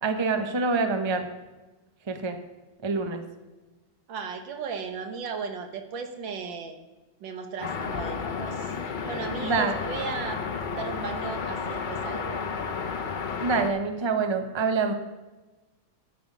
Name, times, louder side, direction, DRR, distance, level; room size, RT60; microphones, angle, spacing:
voice 1, 0.0-1.3 2.1-2.4 2.8-3.2 9.4-9.8 13.4-14.9, right 4 dB, 25° right, 6 dB, 0.6 m, -26 dB
voice 2, 4.1-6.8 7.2-12.4, right 5 dB, 85° right, 6 dB, 1.9 m, -36 dB
sound 1, 7.6-13.7, left 5 dB, 75° left, 0.4 m, -32 dB
12.0 x 9.1 x 5.4 m, 1.2 s
omnidirectional pair, 2.0 m